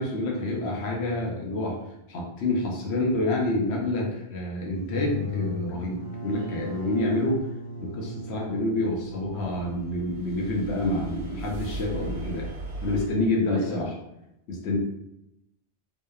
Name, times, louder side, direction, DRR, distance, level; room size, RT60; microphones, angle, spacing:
voice 1, 0.0-1.8 2.1-7.4 7.8-12.5 12.8-13.9 14.5-14.8, left 2 dB, 75° left, -2 dB, 0.9 m, -28 dB
sound 1, 4.8-10.3, left 2 dB, 50° left, 0.6 m, -38 dB
voice 2, 6.3-6.7 13.5-13.8, right 2 dB, 45° right, -7 dB, 0.5 m, -37 dB
sound 2, 8.8-13.1, right 3 dB, 80° right, 0.8 m, -38 dB
2.7 x 2.0 x 2.2 m, 0.86 s
omnidirectional pair, 1.1 m